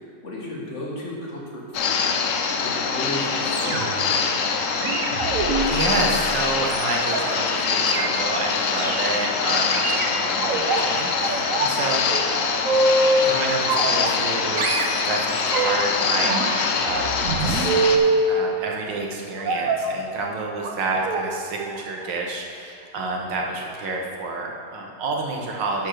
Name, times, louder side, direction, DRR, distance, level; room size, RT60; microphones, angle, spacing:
voice 1, 0.2-2.1 2.6-4.4, left 1 dB, 40° left, -4 dB, 1.7 m, -34 dB
sound 1, 1.7-18.0, left 5 dB, 60° left, 0.9 m, -24 dB
sound 2, 3.5-4.1 4.8-7.3 7.7-8.1 8.8-9.1 9.7-10.8 11.2-11.8 12.1-13.3 13.7-14.3 14.6-15.9 16.2-18.3 19.4-19.9 20.6-20.8 21.0-21.2 21.6-21.8 22.1-22.2, right 3 dB, 55° right, 1.1 m, -24 dB
voice 2, 5.7-12.1 13.2-17.1 17.4-17.7 18.3-25.9, right 3 dB, 75° right, 0 dB, 1.7 m, -29 dB
11.5 x 4.5 x 6.3 m, 2.3 s
omnidirectional pair, 2.0 m